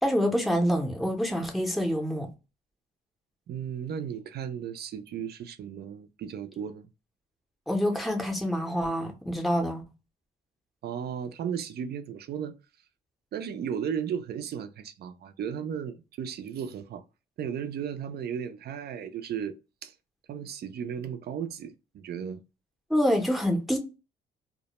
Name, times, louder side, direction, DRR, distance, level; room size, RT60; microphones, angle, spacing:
voice 1, 0.0-2.3 7.7-9.8 22.9-23.8, equal, ahead, 0.6 m, -26 dB
voice 2, 3.5-6.9 10.8-12.5 13.3-17.0 17.4-19.6 19.8-19.9 20.3-22.4, right 8 dB, 55° right, 0.4 m, -35 dB
2.1 x 2.1 x 2.9 m
cardioid pair, 90°, 20 cm